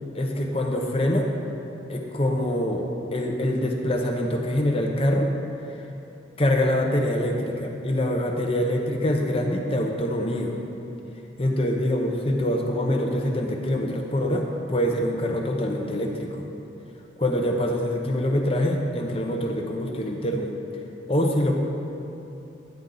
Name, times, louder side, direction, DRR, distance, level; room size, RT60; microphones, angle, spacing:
voice 1, 0.1-1.3 1.9-5.3 6.4-10.5 11.4-16.5 17.2-20.5 21.1-21.6, left 1 dB, 30° left, 2 dB, 0.9 m, -25 dB
10.5 x 9.4 x 3.9 m, 3.0 s
head